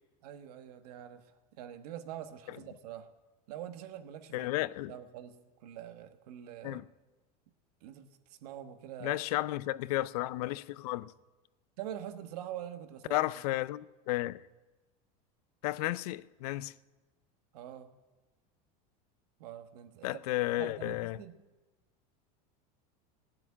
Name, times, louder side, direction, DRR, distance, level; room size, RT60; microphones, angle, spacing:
voice 1, 0.2-3.1 3.5-4.5 4.9-6.8 7.8-9.2 11.8-13.2 17.5-17.9 19.4-20.2 20.6-21.3, right 11 dB, 80° right, 1.3 m, -45 dB
voice 2, 4.3-4.9 6.6-6.8 9.0-11.1 13.1-14.4 15.6-16.7 20.0-21.2, left 17 dB, 75° left, 0.5 m, -33 dB
16.5 x 7.7 x 9.7 m
supercardioid pair, 145°, 20 cm